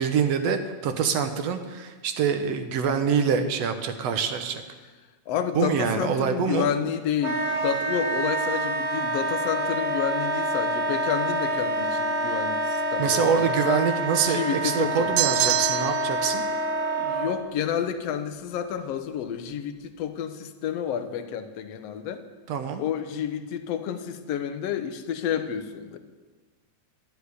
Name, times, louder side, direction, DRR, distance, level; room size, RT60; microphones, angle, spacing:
voice 1, 0.0-4.6 5.6-6.7 13.0-16.4 22.5-22.8, right 7 dB, 65° right, 8 dB, 2.0 m, -25 dB
voice 2, 5.3-13.8 14.3-15.1 17.0-22.2 22.8-26.0, left 8 dB, 70° left, 9 dB, 1.9 m, -30 dB
Wind instrument woodwind instrument, 7.2-17.3, right 1 dB, 35° right, 2.7 m, -27 dB
sound 1, 15.2-16.2, right 15 dB, 85° right, 2.0 m, -25 dB
12.5 x 8.3 x 9.6 m, 1.3 s
omnidirectional pair, 3.4 m